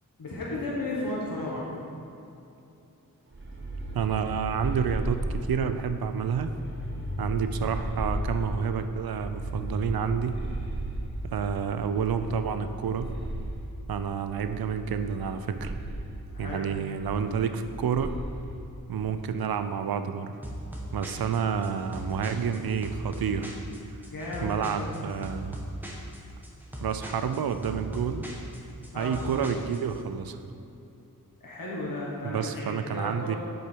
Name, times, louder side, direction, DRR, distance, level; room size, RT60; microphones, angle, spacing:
voice 1, 0.2-1.6 16.3-16.6 24.1-24.7 28.9-29.2 31.4-33.4, left 2 dB, 70° left, -5 dB, 1.3 m, -34 dB
sound 1, 3.3-5.7 6.2-8.7 9.1-11.3 11.8-13.7 14.3-15.3 15.5-16.0 16.9-17.6 17.9-18.4, right 1 dB, 35° right, 1.0 m, -35 dB
voice 2, 3.9-6.5 7.2-10.4 11.2-13.1 13.9-15.7 16.4-18.1 18.9-20.4 20.9-23.6 24.4-25.6 26.8-28.3 29.0-30.4 32.2-33.4, right 7 dB, 85° right, 9 dB, 0.5 m, -29 dB
sound 2, 20.4-30.0, equal, 5° right, 1.0 m, -39 dB
8.0 x 4.9 x 4.5 m, 2.8 s
wide cardioid pair, 95°, 35 cm